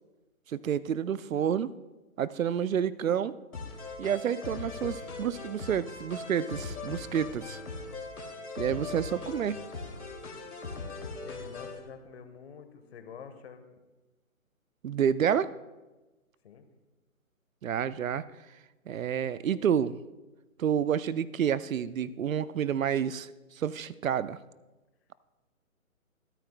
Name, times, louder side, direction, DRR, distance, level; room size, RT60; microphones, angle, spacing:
voice 1, 0.5-1.7 2.2-3.3 4.0-7.6 8.6-9.6 14.8-15.5 17.6-18.2 18.9-20.0 20.6-23.3 23.6-24.4, right 8 dB, 70° right, 17 dB, 0.6 m, -29 dB
sound 1, 3.5-11.8, left 3 dB, 90° left, 2.7 m, -40 dB
voice 2, 10.7-13.7 16.4-16.7, left 6 dB, 45° left, 8 dB, 1.4 m, -48 dB
25.0 x 9.1 x 2.2 m, 1.1 s
hypercardioid pair, 150°, 42 cm